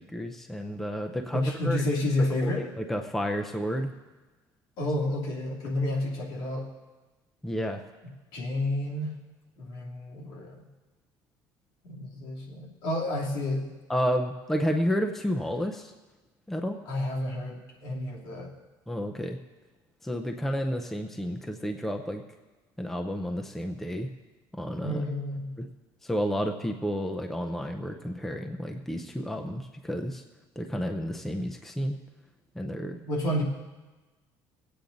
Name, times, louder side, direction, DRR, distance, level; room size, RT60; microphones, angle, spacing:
voice 1, 0.1-1.8 2.4-3.9 7.4-7.8 13.9-15.9 16.5-16.8 18.9-19.4 20.0-22.2 22.8-24.1 24.6-25.0 26.0-30.2 30.6-32.0 32.6-33.0, equal, 5° left, 4 dB, 0.6 m, -31 dB
voice 2, 1.3-2.6 4.8-6.7 8.3-9.1 9.6-10.6 11.8-13.7 16.9-18.5 24.8-25.5 32.9-33.4, left 1 dB, 65° left, -3 dB, 2.7 m, -30 dB
21.0 x 8.5 x 3.9 m, 1.2 s
cardioid pair, 165°, 8 cm